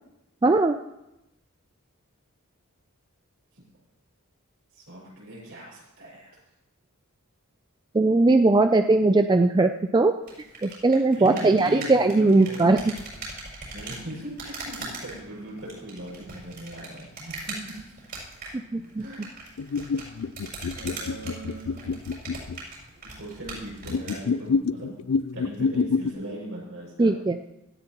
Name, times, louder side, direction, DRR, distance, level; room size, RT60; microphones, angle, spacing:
voice 1, 0.4-0.8 7.9-10.1 10.6-12.8 18.7-19.1 27.0-27.4, right 2 dB, 20° right, 7 dB, 0.3 m, -19 dB
voice 2, 4.7-6.3 11.1-12.8 13.7-18.0 19.0-19.2 20.7-22.0 23.2-25.0 25.3-27.1, right 1 dB, 65° right, -4 dB, 6.3 m, -39 dB
sound 1, 10.2-24.2, right 3 dB, 45° right, 6.0 m, -41 dB
sound 2, 19.6-22.6 23.8-26.1, left 5 dB, 75° left, 0.4 m, -27 dB
17.5 x 14.0 x 3.0 m, 0.91 s
head